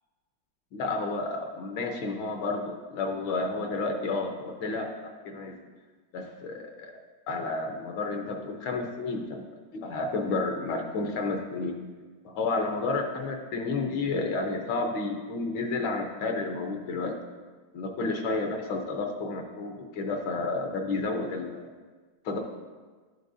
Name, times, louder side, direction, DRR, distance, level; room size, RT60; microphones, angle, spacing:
voice 1, 0.7-5.6 6.1-6.9 7.3-9.4 9.7-11.8 12.2-17.2 17.7-21.7 22.2-22.4, left 3 dB, 75° left, 3 dB, 1.6 m, -31 dB
11.5 x 6.3 x 2.7 m, 1.4 s
omnidirectional pair, 2.2 m